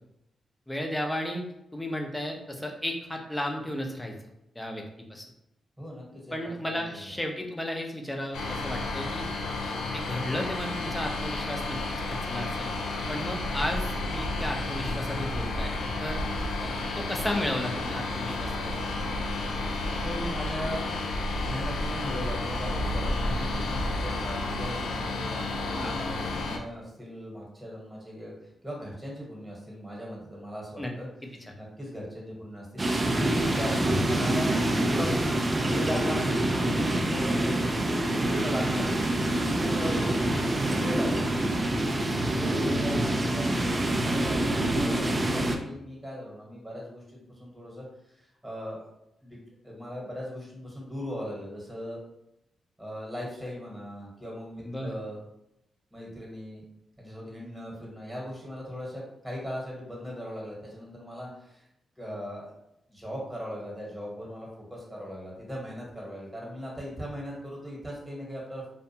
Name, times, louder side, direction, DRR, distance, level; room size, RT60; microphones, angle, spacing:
voice 1, 0.7-1.4 1.7-4.2 4.6-4.8 5.1-5.2 6.3-9.2 9.6-11.8 12.1-12.7 13.1-16.2 16.6-18.8 25.8-25.9 30.8-30.9 31.4-31.5 40.0-40.2 54.7-54.9, left 1 dB, 15° left, 2 dB, 0.6 m, -34 dB
voice 2, 5.8-6.4 6.6-7.0 20.0-20.9 21.4-28.3 28.6-31.1 31.5-32.8 33.2-34.6 34.9-35.3 35.6-39.0 39.3-40.3 40.6-41.5 42.2-48.9 49.2-49.4 49.6-52.0 52.8-55.2 55.9-56.7 57.0-61.6 62.0-62.5 62.9-68.7, equal, 10° right, -4 dB, 1.2 m, -38 dB
sound 1, 8.3-26.6, left 2 dB, 85° left, 0.3 m, -31 dB
sound 2, 32.8-45.6, right 1 dB, 35° right, 0.4 m, -26 dB
2.4 x 2.2 x 2.8 m, 0.83 s
supercardioid pair, 50°, 0 cm